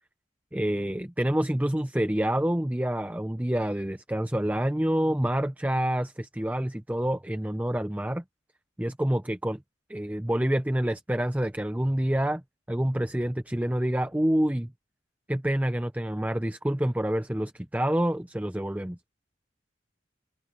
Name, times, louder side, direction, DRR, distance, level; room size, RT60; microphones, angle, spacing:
voice 1, 0.5-8.2 8.8-9.6 9.9-12.4 12.7-14.7 15.3-19.0, right 1 dB, 10° right, 0.6 m, -27 dB
head